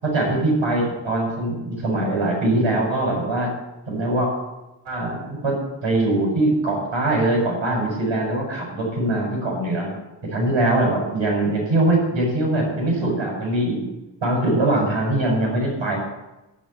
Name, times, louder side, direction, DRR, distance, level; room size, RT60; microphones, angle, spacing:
voice 1, 0.0-3.5 3.9-4.3 4.8-9.9 10.2-13.8 14.2-16.0, right 1 dB, 85° right, -1 dB, 6.8 m, -22 dB
13.5 x 7.7 x 9.1 m, 0.99 s
wide cardioid pair, 175°, 45 cm